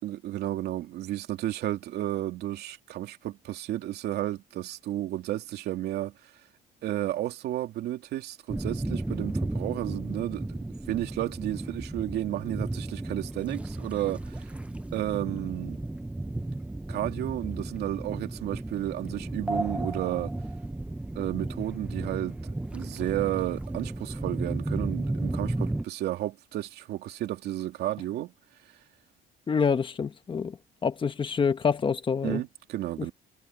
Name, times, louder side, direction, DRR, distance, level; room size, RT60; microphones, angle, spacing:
voice 1, 0.0-6.3 6.8-10.6 10.9-14.5 14.9-15.8 16.9-20.3 21.1-28.3 32.2-33.1, right 14 dB, 75° right, 2.8 m, -32 dB
sound 1, 8.5-25.8, right 2 dB, 5° right, 0.7 m, -34 dB
voice 2, 29.5-30.6 30.8-32.4, left 6 dB, 30° left, 1.2 m, -26 dB
cardioid pair, 110°, 17 cm